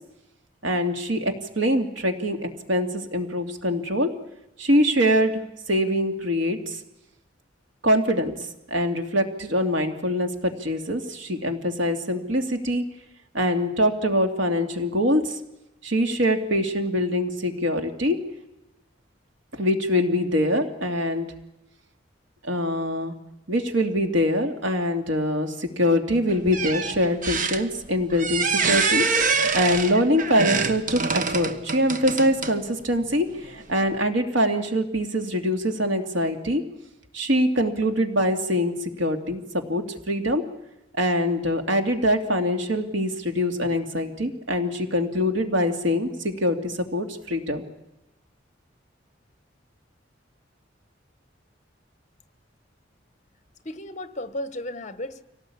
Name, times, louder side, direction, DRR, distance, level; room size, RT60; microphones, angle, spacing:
voice 1, 0.6-4.1 4.6-5.3 5.7-6.8 7.8-8.3 8.7-12.8 13.3-15.4 15.8-18.2 19.5-21.3 22.4-23.1 23.5-36.6 37.1-40.4 41.0-47.6, equal, 90° right, 5 dB, 2.7 m, -24 dB
sound 1, 26.3-32.7 33.4-33.5, right 5 dB, 45° right, 1.4 m, -25 dB
voice 2, 53.6-55.2, left 1 dB, 40° left, 12 dB, 1.4 m, -34 dB
25.0 x 18.0 x 8.7 m, 0.94 s
head